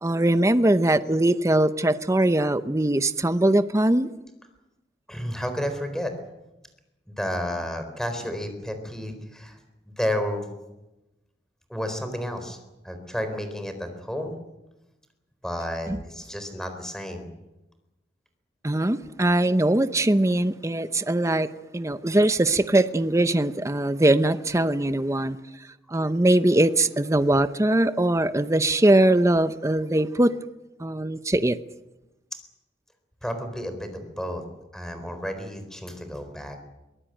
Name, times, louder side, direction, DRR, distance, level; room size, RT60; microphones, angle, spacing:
voice 1, 0.0-4.1 15.9-16.0 18.6-21.5 21.7-25.4 25.9-30.3 30.8-31.6, right 1 dB, 15° right, 0.7 m, -21 dB
voice 2, 5.1-6.1 7.1-9.6 9.9-10.5 11.7-12.6 12.8-14.4 15.4-17.3 33.2-34.4 34.7-36.6, equal, 5° left, 4.1 m, -31 dB
23.5 x 18.5 x 9.0 m
head